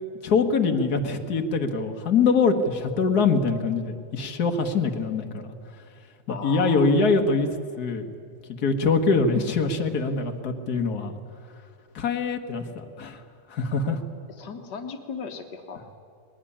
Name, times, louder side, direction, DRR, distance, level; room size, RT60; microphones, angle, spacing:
voice 1, 0.2-5.5 6.3-7.5 7.8-8.1 8.6-11.1 11.9-13.2 13.5-14.0, left 4 dB, 50° left, 5 dB, 1.1 m, -23 dB
voice 2, 6.3-6.9 13.7-13.9 14.4-16.0, left 5 dB, 90° left, 6 dB, 0.9 m, -37 dB
20.5 x 18.5 x 10.0 m, 2.4 s
omnidirectional pair, 3.6 m